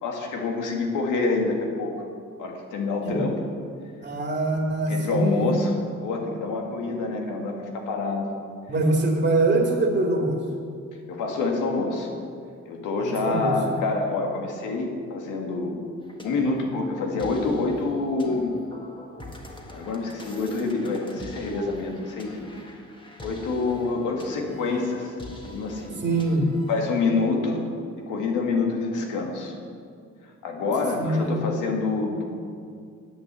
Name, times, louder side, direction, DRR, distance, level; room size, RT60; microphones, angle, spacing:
voice 1, 0.0-2.0 2.4-3.4 4.9-5.7 6.0-8.3 11.1-12.1 12.7-15.8 16.2-18.5 19.7-22.5 23.2-25.1 25.4-26.0 26.7-27.6 28.0-29.5 30.4-32.2, left 3 dB, 90° left, 1 dB, 1.9 m, -27 dB
voice 2, 4.0-5.5 8.7-10.4 13.0-13.8 26.0-26.5 30.9-31.4, right 2 dB, 35° right, 1 dB, 2.0 m, -24 dB
sound 1, 16.0-27.1, left 1 dB, 15° left, 1.7 m, -43 dB
10.0 x 8.1 x 7.4 m, 2.3 s
cardioid pair, 90°, 30 cm